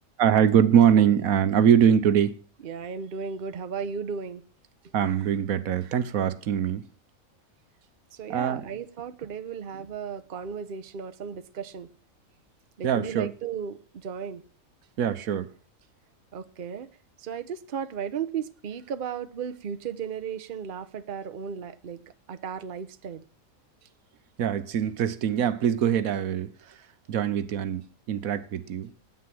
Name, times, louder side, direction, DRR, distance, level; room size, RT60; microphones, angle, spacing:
voice 1, 0.2-2.4 4.9-6.8 8.3-8.6 12.8-13.3 15.0-15.5 24.4-26.5 27.1-28.9, right 8 dB, 80° right, 1.3 m, -23 dB
voice 2, 2.6-4.4 8.1-11.9 12.8-14.4 16.3-16.9 17.2-22.0 22.3-23.2, right 7 dB, 45° right, 0.9 m, -35 dB
9.5 x 8.7 x 7.6 m
omnidirectional pair, 1.5 m